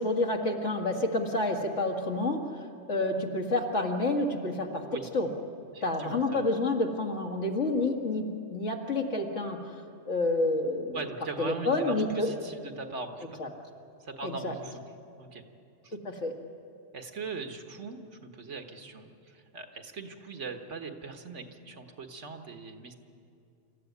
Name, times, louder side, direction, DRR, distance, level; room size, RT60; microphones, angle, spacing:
voice 1, 0.0-2.4 2.9-4.8 5.1-5.3 5.8-9.6 10.1-11.0 11.4-12.3 13.4-13.5 14.2-14.5 16.0-16.3, left 2 dB, 75° left, 2 dB, 2.4 m, -29 dB
voice 2, 5.7-6.5 10.9-13.4 14.0-14.8 15.2-15.4 15.8-16.0 16.9-22.9, right 4 dB, 75° right, 5 dB, 1.8 m, -40 dB
26.0 x 14.0 x 9.5 m, 2.6 s
omnidirectional pair, 1.2 m